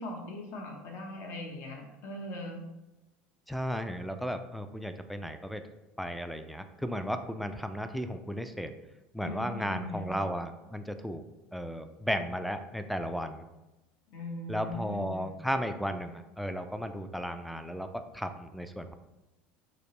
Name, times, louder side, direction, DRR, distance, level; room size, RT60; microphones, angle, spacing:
voice 1, 0.0-2.6 9.2-10.1 14.1-15.3, left 1 dB, 55° left, 1 dB, 0.9 m, -40 dB
voice 2, 3.5-5.6 6.0-8.7 9.1-11.2 11.5-13.5 14.5-18.9, equal, ahead, 8 dB, 0.3 m, -35 dB
5.0 x 2.1 x 3.1 m, 1.0 s
supercardioid pair, 95°, 5 cm